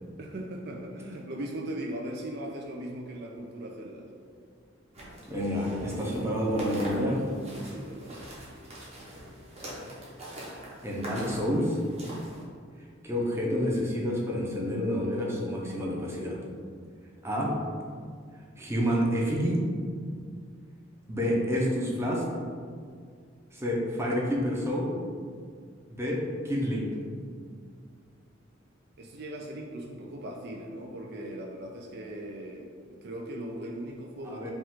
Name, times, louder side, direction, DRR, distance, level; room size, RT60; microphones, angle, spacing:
voice 1, 0.2-4.1 7.5-8.2 27.5-27.6 29.0-32.7 33.0-34.5, right 1 dB, 55° right, 0 dB, 0.4 m, -39 dB
sound 1, 4.9-12.4, right 1 dB, 30° right, 1.0 m, -44 dB
voice 2, 5.3-7.2 9.6-9.9 10.8-11.8 13.0-16.4 17.2-17.5 18.6-19.6 21.1-22.2 23.5-24.9 25.9-26.9 34.2-34.5, equal, 15° right, -3 dB, 0.6 m, -29 dB
sound 2, 5.5-11.4, left 1 dB, 80° left, 0.8 m, -48 dB
5.0 x 2.4 x 3.6 m, 2.1 s
head